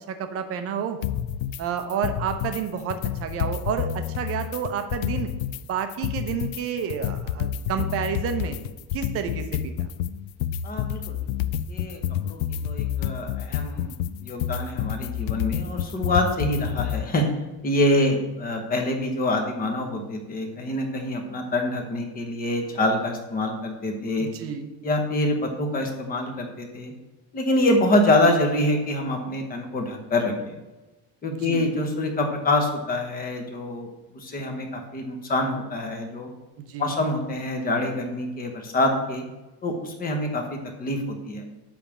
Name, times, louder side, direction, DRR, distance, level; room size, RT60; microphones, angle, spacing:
voice 1, 0.1-1.0 1.6-5.3 5.7-8.6 8.9-9.7 24.2-24.7 31.3-31.7 36.7-36.9, right 7 dB, 30° right, 8 dB, 0.7 m, -30 dB
sound 1, 1.0-1.6 1.9-2.6 2.9-5.6 5.9-17.0, left 10 dB, 85° left, 0.6 m, -29 dB
voice 2, 10.6-12.0 12.2-12.4 12.6-13.9 14.2-17.3 17.6-24.3 24.8-26.9 27.3-30.5 31.2-33.9 34.1-36.3 36.8-39.2 39.6-41.4, left 1 dB, 20° left, 3 dB, 1.0 m, -25 dB
10.5 x 3.5 x 7.2 m, 1.1 s
cardioid pair, 170°, 49 cm